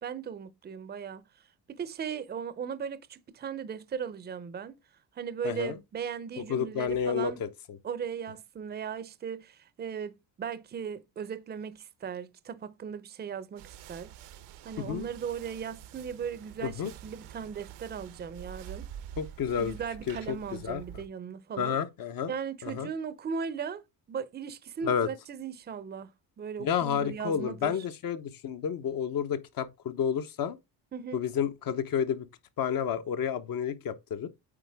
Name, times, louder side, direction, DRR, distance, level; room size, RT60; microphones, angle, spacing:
voice 1, 0.0-1.2 1.7-4.8 5.2-7.4 7.8-14.1 14.6-18.9 19.6-21.8 22.3-26.1 26.4-27.8 30.9-31.2, right 7 dB, 25° right, 0.6 m, -37 dB
voice 2, 5.4-5.8 6.5-7.5 14.8-15.1 16.6-16.9 19.2-19.8 20.1-20.8 21.6-22.3 22.6-22.9 24.8-25.1 26.6-30.6 31.1-32.3 32.6-34.3, left 8 dB, 55° left, 1.0 m, -30 dB
sound 1, 13.6-21.1, right 10 dB, 80° right, 0.9 m, -47 dB
8.6 x 4.1 x 3.5 m
cardioid pair, 120°, 41 cm